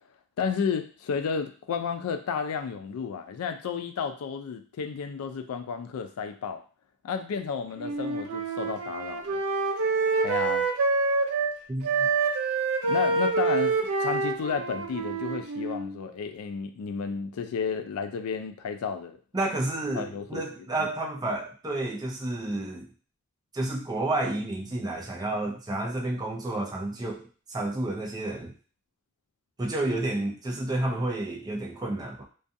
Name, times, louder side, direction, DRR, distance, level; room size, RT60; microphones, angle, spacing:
voice 1, 0.4-6.6 7.0-9.4 10.2-10.6 12.8-19.2 19.9-20.4 20.8-20.9, left 6 dB, 85° left, 8 dB, 0.3 m, -32 dB
Wind instrument woodwind instrument, 7.8-11.5 11.8-15.9, right 4 dB, 90° right, 0.4 m, -27 dB
voice 2, 11.7-12.1 19.3-22.9 23.5-28.5 29.6-32.2, right 2 dB, 15° right, 0 dB, 0.3 m, -30 dB
2.5 x 2.3 x 2.5 m, 0.40 s
head